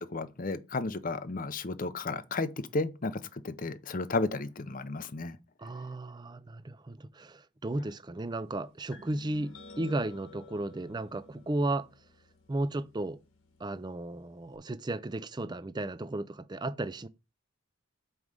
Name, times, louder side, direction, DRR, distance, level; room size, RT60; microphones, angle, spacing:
voice 1, 0.0-5.4, left 3 dB, 40° left, 0.6 m, -33 dB
voice 2, 5.6-11.9 12.5-13.2 13.6-17.1, right 2 dB, 20° right, 0.4 m, -34 dB
sound 1, 8.9-14.6, left 2 dB, 70° left, 1.5 m, -53 dB
5.5 x 4.7 x 6.4 m
head